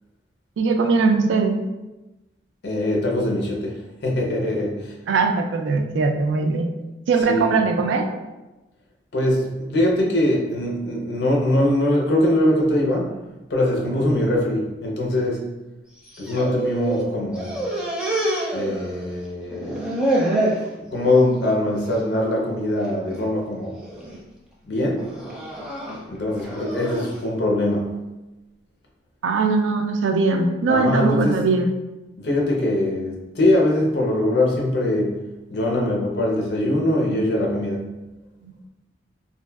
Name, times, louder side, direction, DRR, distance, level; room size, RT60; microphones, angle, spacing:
voice 1, 0.6-1.6 5.1-6.7 7.1-8.1 29.2-31.7 38.4-38.5, right 4 dB, 90° right, 5 dB, 0.3 m, -20 dB
voice 2, 2.6-4.9 7.3-7.6 9.1-13.2 13.5-15.5 16.2-17.6 18.5-19.8 20.8-23.8 24.6-25.1 26.1-27.9 30.7-31.4 32.2-35.2 35.5-37.9, left 1 dB, 65° left, -1 dB, 0.6 m, -22 dB
sound 1, 16.0-17.1 17.3-19.2 19.5-20.7 21.1-21.5 21.8-22.0 22.8-23.2 23.8-24.2 25.0-27.2, right 1 dB, 5° right, 0.4 m, -27 dB
2.9 x 2.5 x 2.3 m, 1.0 s
head